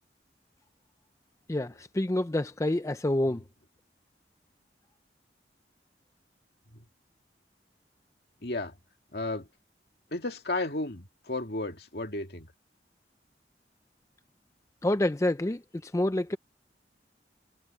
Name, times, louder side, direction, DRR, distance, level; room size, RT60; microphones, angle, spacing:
voice 1, 1.5-3.4 14.8-16.4, left 1 dB, 15° left, 0.5 m, -28 dB
voice 2, 8.4-8.8 9.1-9.5 10.1-12.5, left 2 dB, 65° left, 2.4 m, -33 dB
head